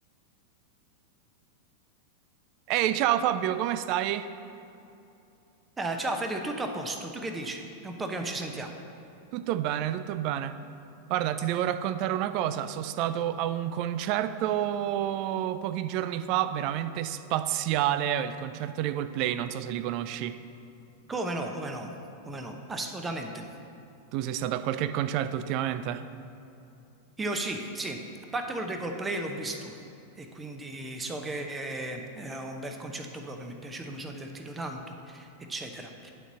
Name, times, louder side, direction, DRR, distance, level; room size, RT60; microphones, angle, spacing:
voice 1, 2.7-4.3 9.3-10.6 11.1-20.4 24.1-26.0, right 11 dB, 50° right, 12 dB, 0.4 m, -29 dB
voice 2, 5.8-8.7 21.1-21.9 22.3-23.5 27.2-28.0 28.3-29.8 30.1-36.1, right 2 dB, 15° right, 4 dB, 0.8 m, -35 dB
9.1 x 4.0 x 7.3 m, 2.8 s
figure-of-eight pair, 95°, 0 cm